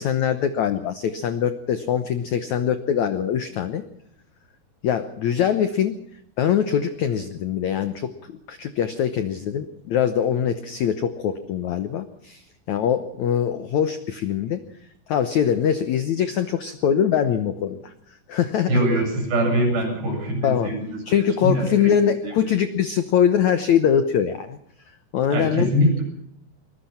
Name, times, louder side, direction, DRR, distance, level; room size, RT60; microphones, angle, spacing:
voice 1, 0.0-3.8 4.8-6.0 6.4-14.6 15.1-18.8 20.4-20.7 21.1-24.6 25.1-25.7, left 8 dB, 85° left, 11 dB, 1.6 m, -23 dB
voice 2, 18.7-22.4 25.3-26.0, right 1 dB, 80° right, 3 dB, 9.9 m, -23 dB
23.0 x 21.0 x 5.8 m, 0.72 s
omnidirectional pair, 4.9 m